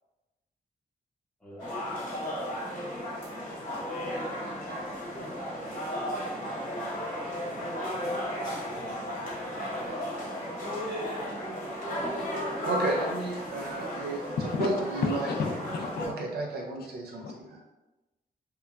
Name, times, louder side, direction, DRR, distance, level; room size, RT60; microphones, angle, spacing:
voice 1, 1.4-1.7 3.7-6.4 7.1-8.4, left 2 dB, 5° left, -7 dB, 0.6 m, -43 dB
sound 1, 1.6-16.1, equal, 55° left, 1.0 m, -35 dB
voice 2, 12.6-15.4 16.0-17.6, right 2 dB, 80° right, 0 dB, 0.4 m, -32 dB
voice 3, 14.4-14.7 15.0-16.1 17.2-17.3, left 5 dB, 75° left, 3 dB, 0.4 m, -31 dB
2.9 x 2.1 x 2.3 m, 1.0 s
wide cardioid pair, 150°, 16 cm